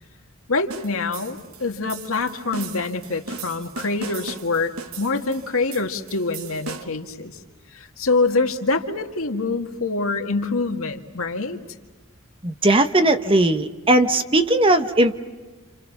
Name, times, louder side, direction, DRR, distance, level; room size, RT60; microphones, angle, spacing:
voice 1, 0.5-7.3 7.7-11.6, left 3 dB, 80° left, 5 dB, 2.0 m, -25 dB
sound 1, 0.7-7.1, right 4 dB, 90° right, 1.3 m, -38 dB
voice 2, 12.4-15.2, right 1 dB, 25° right, 8 dB, 1.1 m, -18 dB
29.5 x 28.5 x 6.1 m, 1.3 s
head